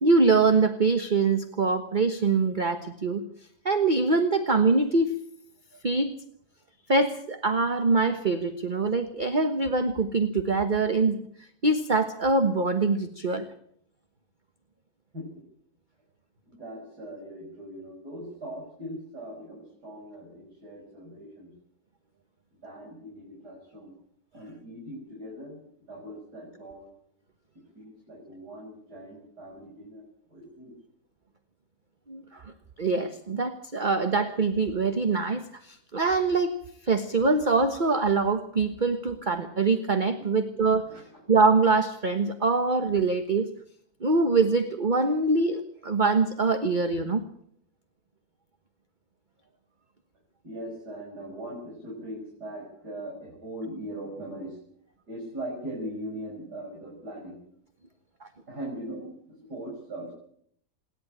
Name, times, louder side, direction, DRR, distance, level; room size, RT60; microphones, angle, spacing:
voice 1, 0.0-3.2 3.6-5.1 5.8-6.1 6.9-11.2 11.6-13.5 32.1-32.5 32.8-40.9 41.3-43.5 44.0-47.2 58.2-58.3, right 3 dB, 30° right, 8 dB, 1.3 m, -24 dB
voice 2, 16.5-21.5 22.5-23.9 24.3-25.6 25.9-26.9 27.7-30.7 40.2-40.3 40.8-41.2 50.4-54.6 55.1-57.4 58.5-60.1, right 1 dB, 70° right, -2 dB, 6.6 m, -40 dB
27.5 x 11.5 x 8.8 m, 0.65 s
omnidirectional pair, 1.8 m